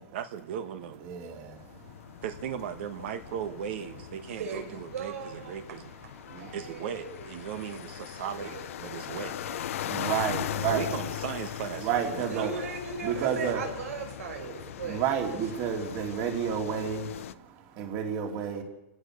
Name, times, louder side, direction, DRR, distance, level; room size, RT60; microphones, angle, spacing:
voice 1, 0.1-1.1 2.2-5.9 6.5-9.4 10.6-12.6, right 8 dB, 55° right, 9 dB, 1.5 m, -37 dB
voice 2, 1.0-2.2 6.2-6.6 9.1-9.2 9.7-10.9 11.8-12.5 13.0-13.6 14.5-18.6, right 8 dB, 35° right, 4 dB, 3.1 m, -31 dB
sound 1, 1.4-17.3, left 11 dB, 70° left, 0.9 m, -39 dB
voice 3, 4.3-5.6 6.4-7.8 8.2-10.1 12.2-15.0, right 5 dB, 80° right, 5 dB, 5.7 m, -39 dB
29.5 x 16.5 x 6.7 m, 0.98 s
supercardioid pair, 170°, 8 cm